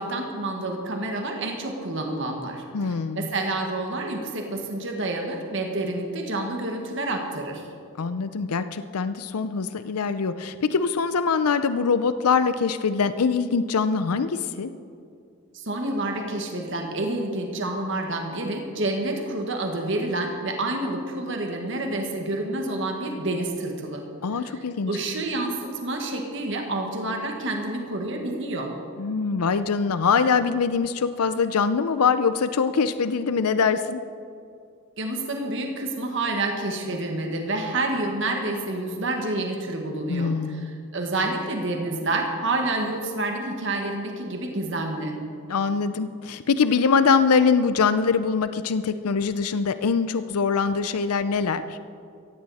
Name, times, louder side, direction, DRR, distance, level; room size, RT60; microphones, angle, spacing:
voice 1, 0.0-7.6 15.5-24.0 24.3-28.7 35.0-45.2, right 2 dB, 55° right, 2 dB, 1.6 m, -28 dB
voice 2, 2.7-3.3 8.0-14.7 24.2-24.9 29.0-34.0 40.1-40.7 45.5-51.8, left 5 dB, 85° left, 12 dB, 0.5 m, -23 dB
17.0 x 15.5 x 4.2 m, 2.4 s
head